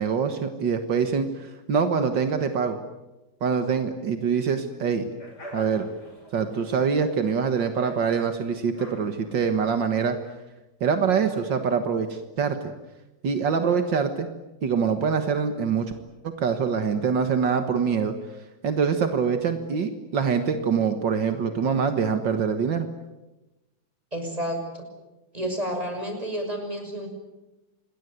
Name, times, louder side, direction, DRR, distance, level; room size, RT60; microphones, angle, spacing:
voice 1, 0.0-2.8 3.4-5.1 5.5-5.9 6.3-10.2 10.8-12.7 13.2-14.3 14.6-15.9 16.2-18.1 18.6-22.9, right 6 dB, 75° right, 7 dB, 2.2 m, -24 dB
sound 1, 5.2-10.2, equal, 60° left, 6.7 m, -45 dB
voice 2, 24.1-24.8 25.3-27.1, equal, 20° right, 4 dB, 6.5 m, -30 dB
27.0 x 21.0 x 9.5 m, 1.0 s
omnidirectional pair, 2.0 m